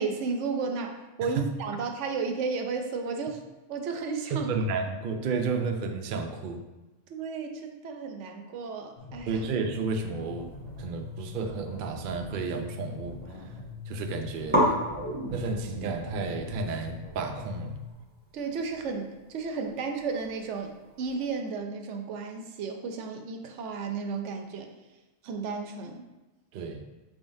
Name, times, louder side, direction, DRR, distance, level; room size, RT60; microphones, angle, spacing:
voice 1, 0.0-3.4 3.7-4.5 7.1-9.4 18.3-24.7 25.2-26.1, right 4 dB, 80° right, 4 dB, 0.9 m, -33 dB
voice 2, 4.5-6.6 9.3-10.5 10.8-13.2 13.9-14.8 15.3-17.8 26.5-26.8, right 4 dB, 60° right, 5 dB, 0.5 m, -32 dB
sound 1, 9.0-17.9, left 4 dB, 40° left, 0.9 m, -43 dB
sound 2, 10.9-12.7 13.0-13.7 13.9-14.0 14.5-21.3, equal, 10° right, 1.2 m, -34 dB
5.5 x 3.7 x 2.6 m, 1.1 s
omnidirectional pair, 1.2 m